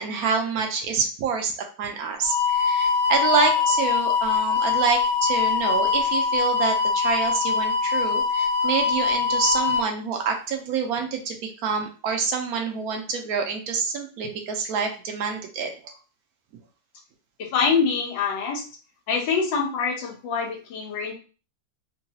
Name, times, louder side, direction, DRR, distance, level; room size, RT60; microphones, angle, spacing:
voice 1, 0.0-15.9, right 5 dB, 70° right, 3 dB, 0.9 m, -27 dB
sound 1, 2.2-9.8, left 5 dB, 55° left, 1.4 m, -23 dB
voice 2, 17.4-18.6 19.1-21.1, left 5 dB, 85° left, -1 dB, 1.5 m, -25 dB
3.8 x 2.2 x 2.7 m, 0.36 s
omnidirectional pair, 1.9 m